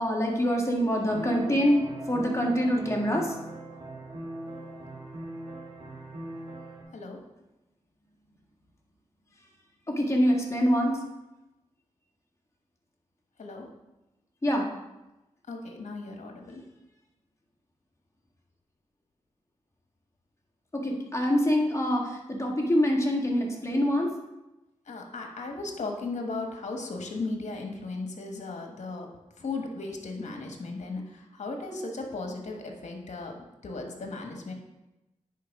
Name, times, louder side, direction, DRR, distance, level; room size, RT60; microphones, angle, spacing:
voice 1, 0.0-3.4 9.9-11.0 14.4-14.7 20.7-24.1, equal, 20° left, -1 dB, 1.8 m, -25 dB
sound 1, 1.1-6.8, right 1 dB, 45° right, 1.6 m, -40 dB
voice 2, 15.5-16.6 24.9-29.1 29.4-33.4 33.6-34.5, left 3 dB, 60° left, 2 dB, 1.3 m, -36 dB
10.0 x 4.4 x 3.6 m, 0.97 s
cardioid pair, 55°, 13 cm